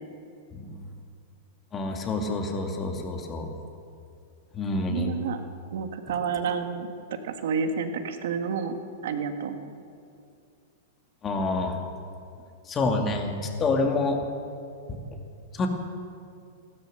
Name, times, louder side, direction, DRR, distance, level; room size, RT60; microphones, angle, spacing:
voice 1, 1.7-3.5 4.5-5.1 11.2-11.8 12.7-14.2 14.9-15.0 15.5-15.7, left 3 dB, 25° left, 3 dB, 2.3 m, -27 dB
voice 2, 4.9-5.4 5.7-6.9 7.2-8.8 9.0-9.6, right 6 dB, 70° right, 7 dB, 1.5 m, -29 dB
16.0 x 13.0 x 6.8 m, 2.4 s
hypercardioid pair, 115°, 0 cm